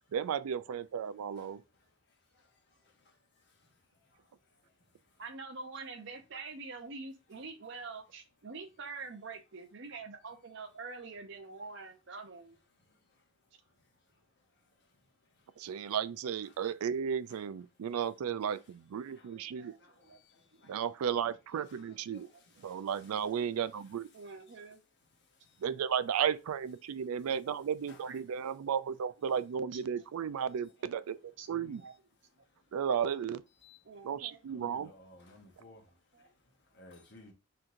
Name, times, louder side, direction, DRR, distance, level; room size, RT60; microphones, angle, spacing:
voice 1, 0.1-1.6 15.6-19.7 20.7-22.3 22.6-24.1 25.6-31.8 32.7-33.4 34.0-34.9, right 8 dB, 85° right, 0.4 m, -34 dB
voice 2, 5.2-12.6 19.1-19.2 19.5-20.2 20.5-20.7 22.2-22.4 22.7-22.8 24.1-24.8 27.0-27.3 28.0-28.1 29.7-29.8 30.2-30.6 31.4-31.9 33.8-34.4 35.6-36.3, right 4 dB, 55° right, 0.7 m, -46 dB
voice 3, 31.5-31.8 33.6-33.8 34.5-35.8 36.8-37.3, left 2 dB, 50° left, 1.1 m, -55 dB
4.4 x 3.7 x 2.6 m
head